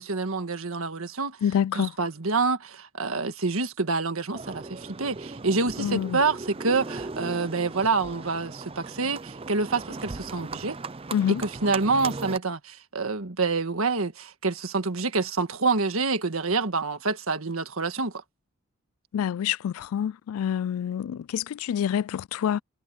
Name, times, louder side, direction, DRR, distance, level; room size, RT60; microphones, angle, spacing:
voice 1, 0.0-1.4 1.7-10.8 11.3-18.1, right 4 dB, 80° right, 1.7 m, -27 dB
voice 2, 1.4-1.9 5.8-6.2 11.1-11.4 19.1-22.6, left 9 dB, 80° left, 0.3 m, -27 dB
Livestock farm animals working animals, 4.3-12.4, right 3 dB, 25° right, 0.5 m, -38 dB
head